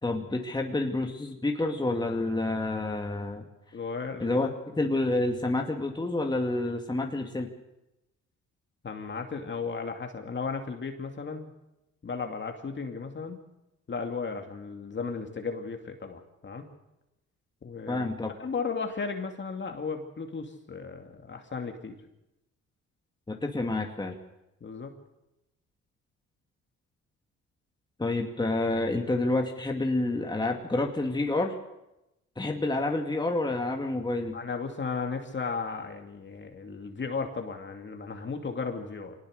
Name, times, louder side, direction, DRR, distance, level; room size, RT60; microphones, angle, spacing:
voice 1, 0.0-3.4 4.2-4.5 4.8-7.5 17.9-18.3 23.3-24.2 28.0-31.6 32.4-34.4, left 2 dB, 15° left, 2 dB, 2.2 m, -28 dB
voice 2, 3.7-4.4 8.8-11.5 12.0-13.4 13.9-16.7 17.6-18.1 18.4-22.0 24.6-24.9 34.3-39.2, left 5 dB, 40° left, 4 dB, 2.5 m, -35 dB
24.0 x 19.0 x 6.6 m, 0.92 s
cardioid pair, 90°, 30 cm